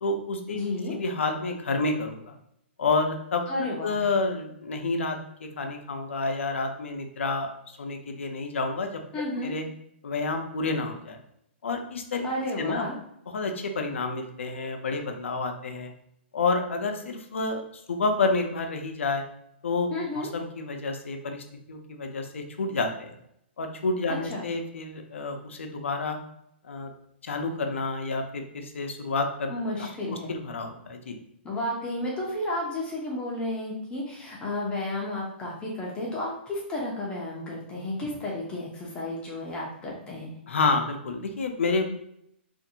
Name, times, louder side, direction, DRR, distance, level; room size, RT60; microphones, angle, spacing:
voice 1, 0.0-0.6 0.9-2.4 2.8-3.5 3.8-9.0 9.4-9.6 10.0-11.2 11.6-12.3 12.6-12.9 13.3-15.9 16.3-19.2 19.6-23.1 23.6-26.2 26.6-26.9 27.2-29.5 29.8-31.2 40.5-41.8, left 3 dB, 85° left, 5 dB, 0.5 m, -29 dB
voice 2, 0.5-0.9 3.5-4.0 9.1-9.5 12.2-12.9 19.9-20.3 24.3-24.5 29.5-30.3 31.4-40.3, left 1 dB, 15° left, -4 dB, 0.5 m, -32 dB
2.5 x 2.5 x 2.7 m, 0.74 s
hypercardioid pair, 150°, 7 cm